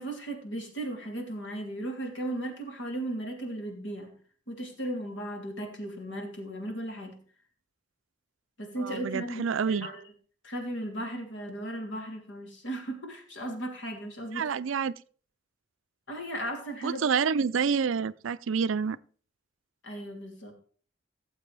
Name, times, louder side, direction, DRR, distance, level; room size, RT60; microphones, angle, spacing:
voice 1, 0.0-4.1 4.5-7.2 8.6-10.0 10.4-14.6 16.1-17.1 19.8-20.5, right 1 dB, 65° left, 3.1 m, -36 dB
voice 2, 8.8-9.9 14.3-14.9 16.8-19.0, right 6 dB, 80° right, 0.5 m, -28 dB
17.5 x 7.5 x 3.3 m
head